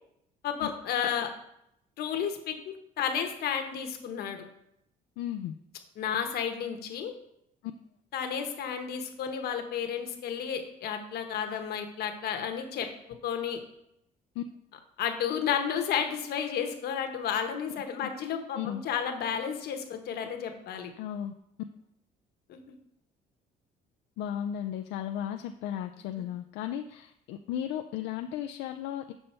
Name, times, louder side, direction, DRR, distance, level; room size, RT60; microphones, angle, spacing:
voice 1, 0.4-1.3 2.0-4.4 6.0-7.1 8.1-12.9 13.2-13.6 15.0-20.9 22.5-22.6, left 8 dB, 70° left, 5 dB, 1.2 m, -32 dB
voice 2, 5.2-5.5 14.4-14.5 18.0-18.1 18.6-18.8 21.0-21.3 24.2-29.1, left 10 dB, 90° left, 6 dB, 0.4 m, -35 dB
7.0 x 5.4 x 4.4 m, 0.77 s
cardioid pair, 110°, 17 cm